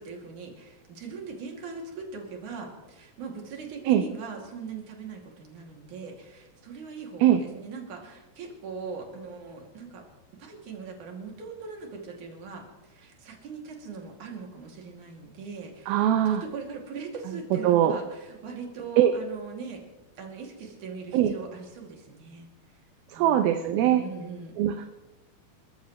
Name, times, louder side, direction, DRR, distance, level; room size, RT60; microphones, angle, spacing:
voice 1, 0.0-10.1 10.3-19.8 20.2-22.5 23.1-24.6, right 5 dB, 55° right, 0 dB, 3.7 m, -41 dB
voice 2, 15.9-16.4 17.6-18.0 19.0-19.1 21.1-21.3 23.1-24.0 24.6-24.9, right 11 dB, 75° right, 7 dB, 2.5 m, -21 dB
29.0 x 14.0 x 3.1 m, 1.0 s
omnidirectional pair, 4.5 m